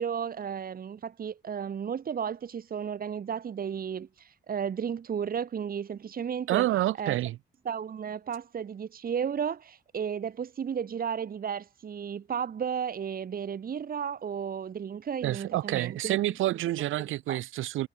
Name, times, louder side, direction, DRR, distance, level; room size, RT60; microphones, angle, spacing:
voice 1, 0.0-6.7 7.0-7.2 7.7-16.3 17.0-17.4, right 7 dB, 45° right, 1.8 m, -33 dB
voice 2, 6.5-7.4 15.2-17.9, right 15 dB, 85° right, 6.0 m, -28 dB
cardioid pair, 90°, 20 cm